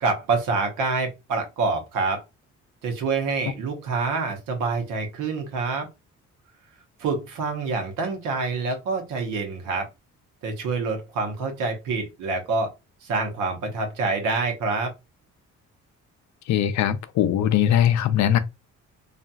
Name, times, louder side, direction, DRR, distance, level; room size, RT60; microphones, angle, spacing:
voice 1, 0.0-2.2 2.8-5.9 7.0-9.9 10.4-12.7 13.0-14.9, right 4 dB, 85° right, 0.9 m, -26 dB
voice 2, 16.5-18.4, left 10 dB, 65° left, 0.4 m, -20 dB
2.8 x 2.4 x 2.2 m
cardioid pair, 90°, 30 cm